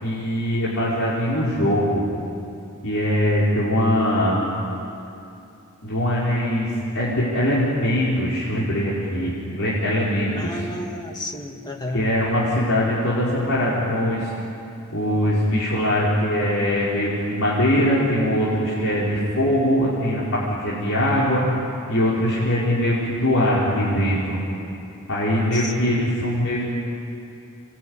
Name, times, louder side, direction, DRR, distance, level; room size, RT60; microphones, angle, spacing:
voice 1, 0.0-2.0 2.8-4.4 5.8-10.7 11.9-14.3 14.9-21.5 21.9-24.4 25.1-26.6, equal, 70° left, -8 dB, 5.0 m, -22 dB
voice 2, 10.3-12.1 25.6-26.1, left 1 dB, 20° left, 3 dB, 2.0 m, -32 dB
28.0 x 21.5 x 9.8 m, 2.7 s
head